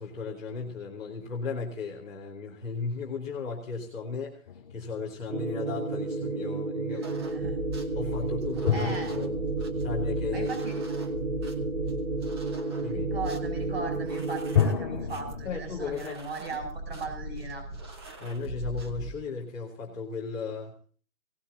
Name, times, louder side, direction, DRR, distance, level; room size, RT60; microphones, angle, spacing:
voice 1, 0.0-4.4 4.7-7.1 7.9-9.4 9.8-10.5 12.8-13.1 15.4-16.2 18.2-20.9, left 4 dB, 5° left, -8 dB, 0.7 m, -35 dB
sound 1, 4.5-5.8 8.6-11.2 14.5-15.5, left 8 dB, 25° left, 1.8 m, -31 dB
sound 2, 5.3-14.6, right 3 dB, 65° right, 6.8 m, -32 dB
voice 2, 6.9-7.6 8.7-9.1 10.3-10.8 12.9-17.6, right 4 dB, 45° right, 5 dB, 7.9 m, -38 dB
sound 3, 7.0-19.1, right 1 dB, 20° right, 1.3 m, -38 dB
21.5 x 18.5 x 2.8 m, 0.43 s
hypercardioid pair, 170°, 43 cm